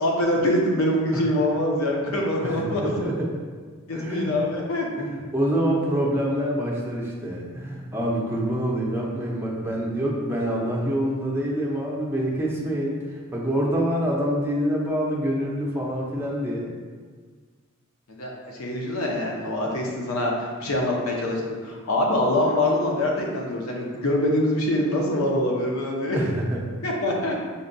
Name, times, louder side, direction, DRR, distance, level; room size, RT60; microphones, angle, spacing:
voice 1, 0.0-3.0 3.9-4.9 18.1-26.2 26.8-27.4, left 1 dB, 70° left, -1 dB, 0.7 m, -24 dB
voice 2, 2.1-3.3 3.9-4.3 5.0-13.0 13.3-16.7 26.1-26.6, equal, 10° right, -4 dB, 0.5 m, -26 dB
5.3 x 2.2 x 2.6 m, 1.6 s
head